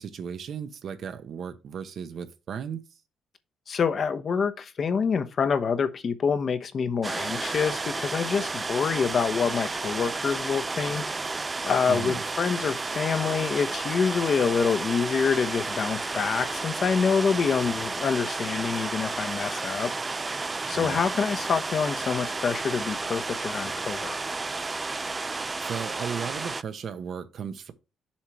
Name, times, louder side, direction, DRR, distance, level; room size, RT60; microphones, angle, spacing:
voice 1, 0.0-2.8 11.9-12.2 20.7-21.0 25.6-27.7, right 7 dB, 60° right, 1.0 m, -35 dB
voice 2, 3.7-11.0 11.6-19.9 20.7-24.1, left 6 dB, 50° left, 0.9 m, -26 dB
sound 1, 7.0-26.6, right 3 dB, 25° right, 0.4 m, -32 dB
7.2 x 3.2 x 6.1 m
cardioid pair, 90°, 0 cm